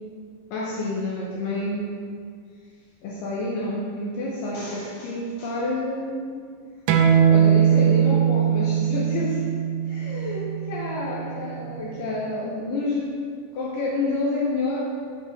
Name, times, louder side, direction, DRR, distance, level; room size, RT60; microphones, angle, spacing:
voice 1, 0.5-1.9 3.0-6.5 7.3-9.4 9.9-13.2 13.5-14.8, left 2 dB, 75° left, -5 dB, 2.0 m, -29 dB
sound 1, 6.9-12.1, right 8 dB, 80° right, 2.1 m, -21 dB
7.6 x 5.9 x 3.5 m, 2.1 s
omnidirectional pair, 4.8 m